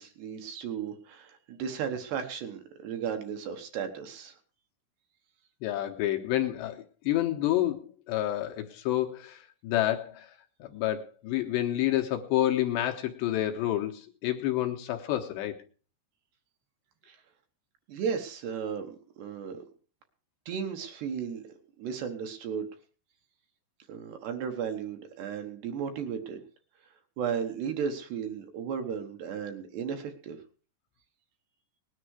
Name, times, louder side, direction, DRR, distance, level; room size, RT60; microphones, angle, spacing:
voice 1, 0.0-4.3 17.1-17.2 17.9-19.6 20.5-21.4 21.8-22.7 23.9-26.4 27.2-30.4, right 7 dB, 70° right, 3.0 m, -35 dB
voice 2, 5.6-10.3 10.6-15.6, left 13 dB, 75° left, 2.8 m, -29 dB
19.5 x 10.0 x 4.8 m
omnidirectional pair, 5.7 m